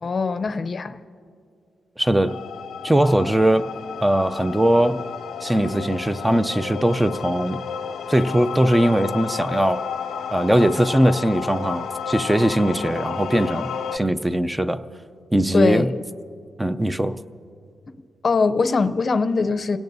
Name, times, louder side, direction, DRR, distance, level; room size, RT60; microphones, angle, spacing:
voice 1, 0.0-1.0 15.5-16.0 18.2-19.8, left 4 dB, 40° left, 11 dB, 0.6 m, -22 dB
voice 2, 2.0-2.4 2.8-3.7 4.0-5.0 5.4-7.6 8.1-9.9 10.3-14.8 15.3-15.9 16.6-17.2, right 1 dB, 10° right, 11 dB, 0.5 m, -20 dB
sound 1, 2.3-14.0, left 7 dB, 80° left, 0.4 m, -32 dB
29.0 x 17.5 x 2.7 m, 2.4 s
cardioid pair, 115°, 0 cm